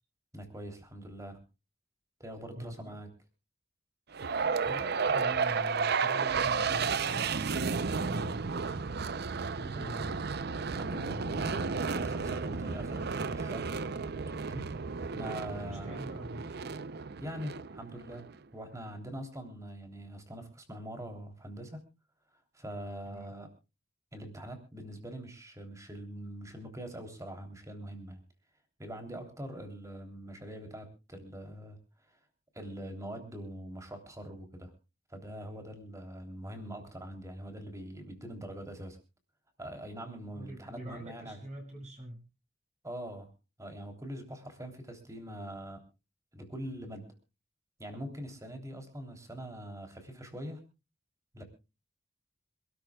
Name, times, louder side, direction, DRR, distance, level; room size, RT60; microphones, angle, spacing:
voice 1, 0.3-1.4 2.2-3.1 9.7-10.0 10.7-13.8 14.3-14.7 15.1-16.1 17.2-21.8 22.5-23.5 24.1-28.2 28.8-31.8 32.1-32.2 32.5-34.7 35.1-39.0 39.6-41.4 42.8-43.3 43.6-45.8 46.3-47.1 47.8-50.6 51.3-51.4, equal, 15° right, 5 dB, 3.3 m, -43 dB
voice 2, 2.5-3.0 4.6-7.7 8.0-8.5 9.6-10.1 15.6-16.6 23.1-23.3 40.3-42.2, right 1 dB, 35° right, 0 dB, 5.9 m, -44 dB
sound 1, 4.1-18.3, right 5 dB, 55° right, 0.6 m, -33 dB
27.0 x 13.0 x 2.3 m, 0.30 s
head